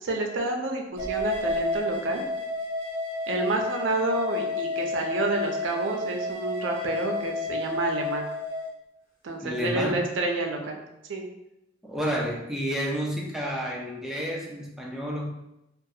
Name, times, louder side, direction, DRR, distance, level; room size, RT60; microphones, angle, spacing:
voice 1, 0.0-2.2 3.3-8.3 9.2-10.8 11.1-11.3, right 3 dB, 75° right, 2 dB, 0.5 m, -29 dB
sound 1, 1.0-8.7, left 3 dB, 45° left, 1.3 m, -30 dB
voice 2, 9.4-10.0 11.8-15.3, equal, 5° right, -2 dB, 0.3 m, -30 dB
2.3 x 2.3 x 2.7 m, 0.88 s
head